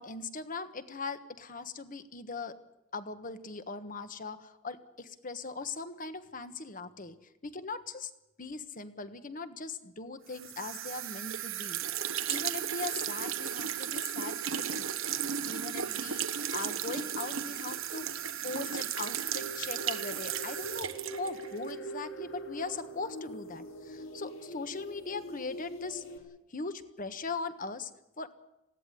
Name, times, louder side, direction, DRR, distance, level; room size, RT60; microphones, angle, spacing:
voice 1, 0.0-2.6 2.9-7.2 7.4-8.1 8.4-15.0 15.4-18.1 18.4-26.0 26.5-27.9 28.2-28.3, left 4 dB, 40° left, 11 dB, 1.4 m, -40 dB
sound 1, 10.3-21.8, right 9 dB, 80° right, 1.2 m, -35 dB
sound 2, 19.3-26.2, right 1 dB, 70° left, 3.8 m, -43 dB
20.0 x 16.5 x 9.9 m, 0.91 s
head